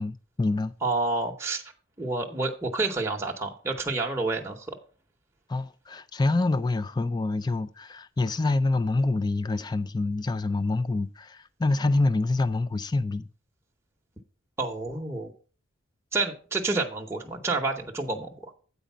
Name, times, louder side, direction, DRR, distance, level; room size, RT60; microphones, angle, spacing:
voice 1, 0.0-0.7 5.5-13.3, left 2 dB, 20° left, 0.3 m, -26 dB
voice 2, 0.8-1.6 2.0-4.7 14.6-15.3 16.1-18.5, right 3 dB, 15° right, 0.9 m, -29 dB
8.2 x 5.0 x 5.5 m
head